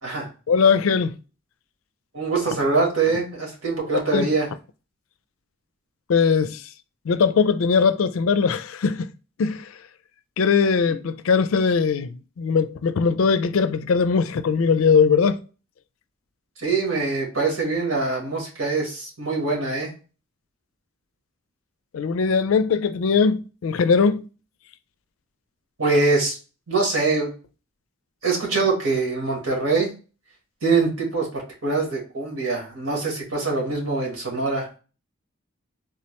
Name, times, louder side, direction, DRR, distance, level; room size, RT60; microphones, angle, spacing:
voice 1, 0.5-1.2 4.1-4.3 6.1-6.6 7.1-9.1 9.4-9.7 10.4-15.4 21.9-24.3, left 5 dB, 80° left, 0.4 m, -20 dB
voice 2, 2.1-4.5 10.9-11.0 16.6-19.9 25.8-26.4 26.7-27.3 28.2-29.9 30.6-34.7, right 3 dB, 85° right, 1.8 m, -23 dB
3.7 x 2.9 x 3.0 m
head